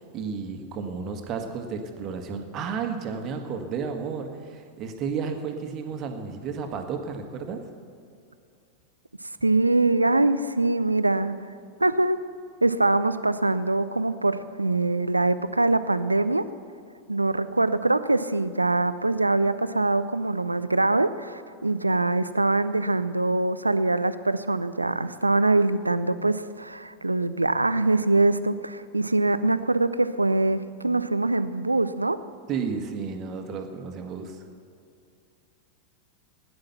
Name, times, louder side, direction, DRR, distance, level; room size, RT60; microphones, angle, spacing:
voice 1, 0.0-7.6 32.5-34.4, right 5 dB, 35° right, 5 dB, 1.7 m, -32 dB
voice 2, 9.4-11.4 11.8-12.2 12.6-16.5 17.1-32.2, right 2 dB, 85° right, 14 dB, 0.5 m, -23 dB
17.0 x 10.5 x 5.9 m, 2.4 s
figure-of-eight pair, 90°, 0 cm